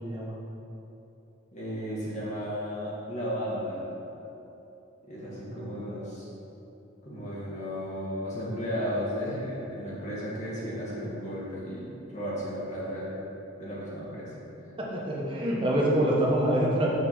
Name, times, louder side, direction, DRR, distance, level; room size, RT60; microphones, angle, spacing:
voice 1, 0.0-0.3 5.5-5.7 14.8-16.9, right 1 dB, 25° right, -4 dB, 1.2 m, -26 dB
voice 2, 1.5-3.8 5.0-6.3 7.0-13.2 13.6-14.3 14.6-14.8, equal, 35° left, -7 dB, 1.7 m, -34 dB
6.6 x 5.9 x 4.6 m, 2.9 s
head